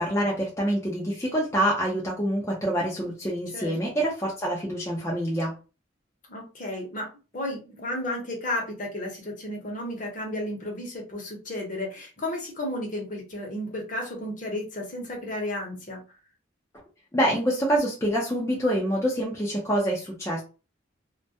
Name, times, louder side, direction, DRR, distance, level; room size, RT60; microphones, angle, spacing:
voice 1, 0.0-5.5 17.1-20.4, right 1 dB, 15° left, -3 dB, 0.5 m, -26 dB
voice 2, 6.3-7.1 7.3-16.0, left 1 dB, 40° left, 0 dB, 0.8 m, -33 dB
2.2 x 2.1 x 2.7 m, 0.32 s
head